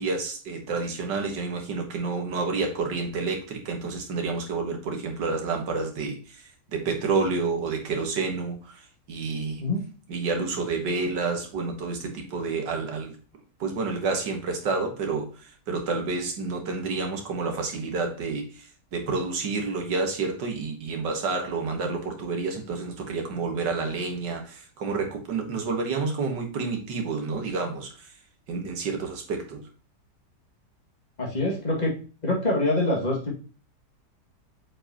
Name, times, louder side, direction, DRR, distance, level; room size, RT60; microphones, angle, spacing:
voice 1, 0.0-9.6 10.1-13.2 13.6-28.1 28.5-29.7, right 4 dB, 90° right, 2.0 m, -29 dB
voice 2, 31.2-32.0 32.2-33.4, left 2 dB, 25° left, 2.2 m, -25 dB
7.5 x 4.8 x 2.9 m
omnidirectional pair, 1.8 m